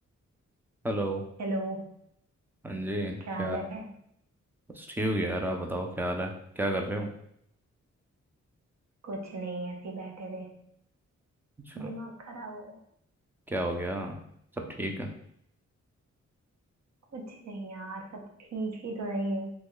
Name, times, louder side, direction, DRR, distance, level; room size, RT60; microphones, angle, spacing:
voice 1, 0.8-1.2 2.6-3.6 4.7-7.1 11.6-11.9 13.5-14.2 14.7-15.1, right 1 dB, 5° right, 2 dB, 0.4 m, -31 dB
voice 2, 1.4-1.9 3.2-3.9 9.0-10.6 11.7-12.8 17.1-19.5, right 2 dB, 65° right, 1 dB, 0.7 m, -36 dB
3.0 x 2.2 x 3.7 m, 0.70 s
wide cardioid pair, 155°, 29 cm